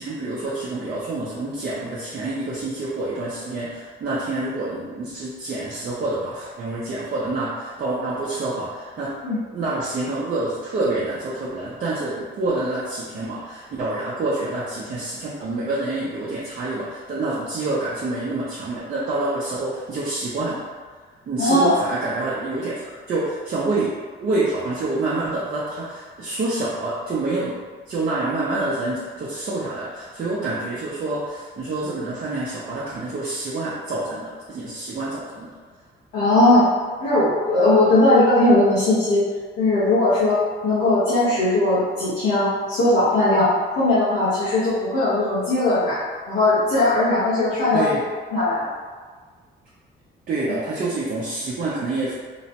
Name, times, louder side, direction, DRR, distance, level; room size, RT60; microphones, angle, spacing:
voice 1, 0.0-9.1 9.5-20.6 21.3-23.9 24.2-27.6 27.9-35.5 47.7-48.0 50.3-52.1, right 2 dB, 50° right, -8 dB, 0.6 m, -27 dB
voice 2, 21.4-21.7 36.1-36.7 37.0-39.2 39.6-46.0 46.3-48.0 48.3-48.7 50.5-50.6, left 2 dB, 90° left, -13 dB, 1.0 m, -19 dB
3.0 x 2.1 x 2.8 m, 1.5 s
cardioid pair, 90°, 20 cm